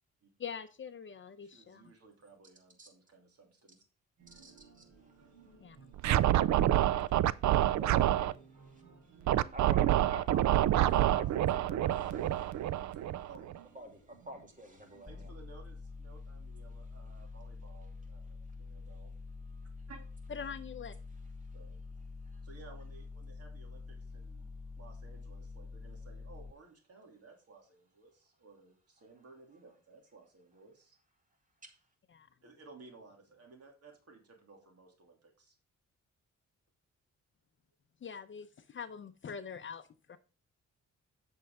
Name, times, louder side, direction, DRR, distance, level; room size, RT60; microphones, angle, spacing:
voice 1, 0.4-1.9 5.6-5.8 20.3-21.0 32.1-32.3 38.0-40.2, left 6 dB, 40° left, 0.7 m, -44 dB
voice 2, 1.4-3.8 12.9-13.5 15.1-19.1 19.9-20.1 21.5-21.8 22.4-24.5 24.8-31.0 32.4-35.6, right 4 dB, 55° right, 2.8 m, -57 dB
sound 1, 4.2-15.3, right 5 dB, 90° right, 4.3 m, -60 dB
voice 3, 4.4-5.1 7.8-9.2 9.5-13.1 13.7-15.3 17.1-17.4 19.4-19.9 21.4-21.6 22.2-22.4 31.6-31.8, right 1 dB, 25° right, 2.6 m, -50 dB
Scratching (performance technique), 6.0-8.3 9.3-13.6, right 13 dB, 75° right, 0.4 m, -27 dB
sound 2, 15.1-26.5, left 4 dB, 10° left, 0.4 m, -47 dB
8.2 x 6.6 x 3.6 m
cardioid pair, 115°, 29 cm